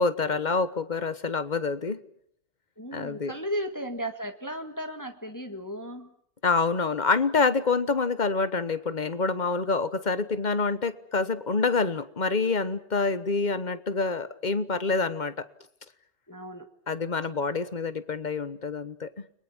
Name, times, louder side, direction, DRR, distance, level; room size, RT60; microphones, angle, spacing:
voice 1, 0.0-2.0 2.9-3.3 6.4-15.3 16.9-19.2, left 4 dB, 30° left, 14 dB, 1.1 m, -27 dB
voice 2, 2.8-6.1 16.3-16.7, equal, 10° left, 6 dB, 1.8 m, -35 dB
30.0 x 22.0 x 7.3 m, 0.63 s
omnidirectional pair, 1.9 m